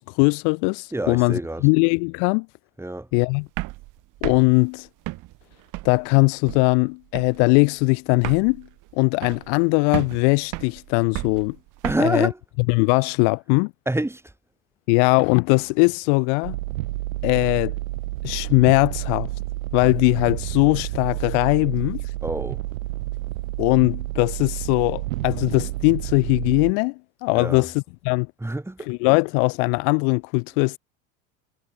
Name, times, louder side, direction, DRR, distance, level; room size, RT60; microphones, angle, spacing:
voice 1, 0.0-2.5 3.1-3.4 4.2-4.9 5.8-8.7 8.9-11.6 12.0-12.3 12.7-13.7 14.9-16.6 17.2-17.7 18.2-19.3 19.7-22.0 23.6-26.9 27.2-28.3 28.9-30.8, left 40 dB or more, 55° left, 0.5 m, -20 dB
voice 2, 0.9-1.7 2.8-3.1 11.8-12.4 13.9-14.3 22.2-22.6 27.3-27.7 28.4-29.1, right 1 dB, 5° right, 1.7 m, -27 dB
sound 1, 3.4-6.1 6.5-6.9 7.1-7.5 7.8-7.9 8.1-9.6 9.9-12.0, right 20 dB, 45° right, 0.9 m, -33 dB
sound 2, 16.4-26.7, right 18 dB, 75° right, 1.6 m, -30 dB
hypercardioid pair, 80°, 42 cm